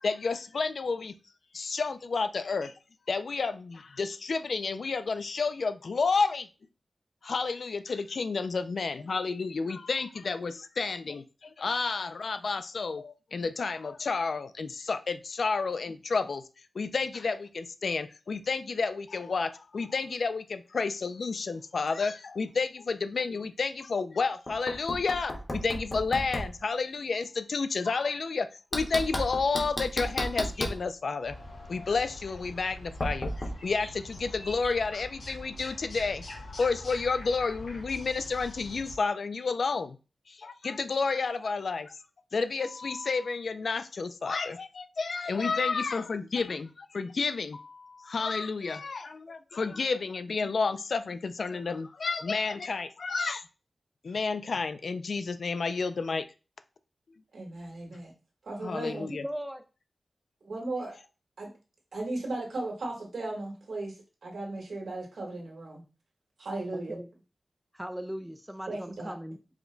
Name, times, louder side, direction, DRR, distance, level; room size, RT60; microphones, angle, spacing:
voice 1, 0.0-1.1 1.5-2.7 3.1-6.5 7.2-16.4 16.8-31.4 31.7-40.0 40.3-41.9 42.3-53.4 54.0-56.3 58.6-59.2, left 4 dB, 65° left, 11 dB, 0.4 m, -31 dB
Knock, 24.5-26.6 28.7-30.8 33.0-33.5, equal, 30° left, 1.0 m, -33 dB
sound 1, 31.2-39.0, left 1 dB, 90° left, 2.3 m, -44 dB
voice 2, 57.3-58.1 58.4-59.1 60.4-61.0 61.4-61.5 61.9-65.8 66.4-67.0 68.7-69.1, right 2 dB, 85° right, -1 dB, 1.5 m, -36 dB
voice 3, 58.8-59.6 66.7-67.1 67.7-69.6, equal, 5° right, 8 dB, 0.4 m, -39 dB
4.9 x 2.2 x 3.8 m, 0.32 s
wide cardioid pair, 125°, 0 cm